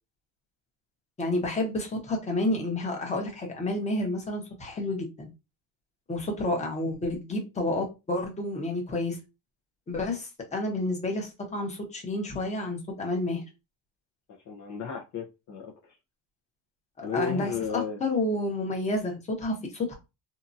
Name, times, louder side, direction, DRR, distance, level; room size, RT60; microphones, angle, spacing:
voice 1, 1.2-5.3 6.1-9.2 9.9-13.4 17.0-19.9, left 2 dB, 15° left, 1.0 m, -30 dB
voice 2, 14.5-16.0 17.0-18.0, left 6 dB, 45° left, 0.7 m, -34 dB
2.8 x 2.5 x 2.6 m
cardioid pair, 130°, 39 cm